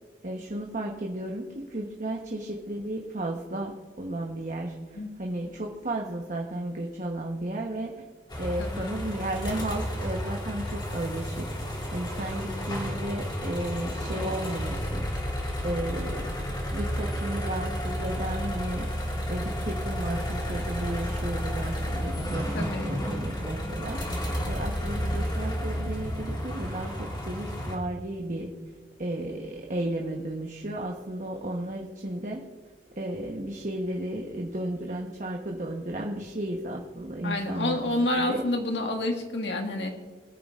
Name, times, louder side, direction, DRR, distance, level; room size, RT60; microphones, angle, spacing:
voice 1, 0.2-7.9 8.4-15.4 15.6-16.4 16.7-18.9 19.3-28.5 29.0-32.4 33.0-37.8 38.2-38.5, right 1 dB, 45° right, 1 dB, 1.0 m, -34 dB
sound 1, 8.3-27.8, equal, 25° left, 2.0 m, -31 dB
voice 2, 8.6-8.9 22.5-22.9 37.2-39.9, left 1 dB, 80° left, 2 dB, 1.7 m, -28 dB
21.0 x 9.4 x 2.5 m, 1.5 s
head